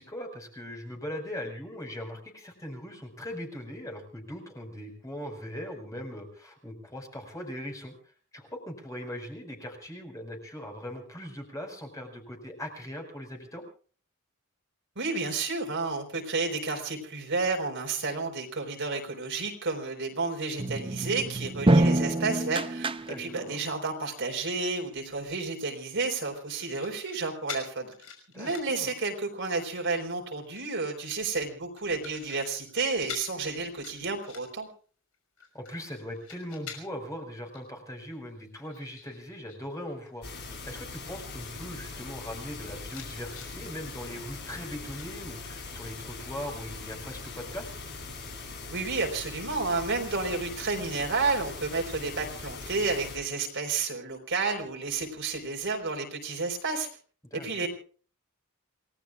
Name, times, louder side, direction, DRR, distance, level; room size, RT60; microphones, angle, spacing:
voice 1, 0.0-7.9 8.3-13.6 23.1-23.6 28.3-28.9 35.5-40.3 40.7-47.7 57.3-57.7, equal, 15° left, 3 dB, 5.0 m, -40 dB
voice 2, 15.0-22.9 23.2-27.9 28.3-34.7 48.7-56.9 57.3-57.7, right 3 dB, 55° right, 3 dB, 4.2 m, -31 dB
sound 1, 20.6-23.6, right 1 dB, 25° right, 0.8 m, -26 dB
sound 2, 26.4-27.2 27.5-28.8 29.3-29.7 30.4-31.2 31.8-32.4 32.7-32.8 33.1-33.3 33.6-34.7 35.1-37.1 37.5-37.7 38.0-39.6 39.9-40.3 40.9-41.0 41.2-41.9 42.4-42.5 42.8-43.5 45.0-45.7 46.1-46.3, left 7 dB, 70° left, 5.7 m, -45 dB
sound 3, 40.2-53.2, left 4 dB, 50° left, 6.9 m, -41 dB
29.0 x 19.0 x 2.4 m, 0.41 s
head